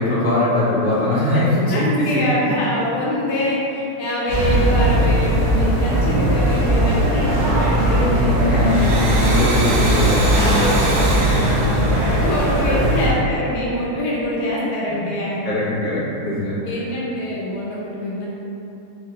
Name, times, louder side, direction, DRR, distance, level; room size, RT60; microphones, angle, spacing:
voice 1, 0.0-2.3 4.4-4.6 5.8-5.9 7.9-11.3 11.9-12.3 12.6-12.8 14.9-15.1 15.4-16.5, left 1 dB, 45° left, -10 dB, 0.6 m, -21 dB
voice 2, 1.7-9.0 10.9-15.7 16.6-18.3, left 1 dB, 80° left, -6 dB, 1.6 m, -25 dB
sound 1, 4.3-13.1, right 1 dB, 55° right, 1.0 m, -18 dB
Domestic sounds home sounds, 8.6-13.1, right 2 dB, 85° right, 1.5 m, -26 dB
4.5 x 2.4 x 2.8 m, 2.9 s
omnidirectional pair, 2.4 m